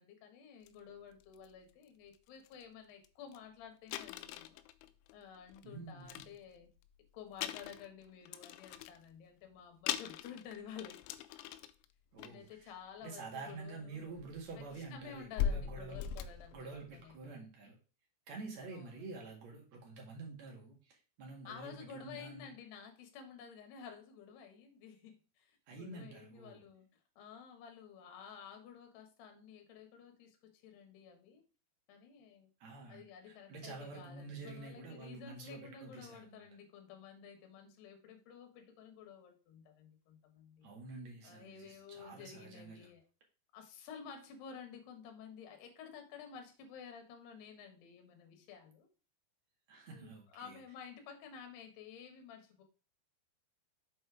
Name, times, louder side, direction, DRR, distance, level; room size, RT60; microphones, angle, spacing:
voice 1, 0.0-4.6 5.1-6.7 7.1-11.0 12.2-14.2 14.6-14.7 14.9-17.4 18.7-19.1 21.4-26.9 27.2-31.4 31.9-32.5 32.9-40.7 41.2-43.0 43.5-48.9 49.9-52.6, left 7 dB, 70° left, 4 dB, 3.2 m, -52 dB
sound 1, 0.7-0.8 1.2-1.5 2.1-2.2 2.5-2.6 3.0-3.1 3.3-3.4 3.9-5.6 6.0-6.9 7.3-9.1 9.5-9.6 9.9-11.9 12.2-12.5 13.6-13.7 14.2-17.2, left 9 dB, 85° left, 3.0 m, -41 dB
voice 2, 5.6-6.1 12.1-12.7 13.0-16.0 16.5-17.8 18.3-22.5 25.7-26.6 32.6-36.4 40.6-42.9 49.7-50.6, right 3 dB, 50° right, 0 dB, 2.3 m, -48 dB
7.5 x 4.4 x 4.8 m, 0.35 s
omnidirectional pair, 5.4 m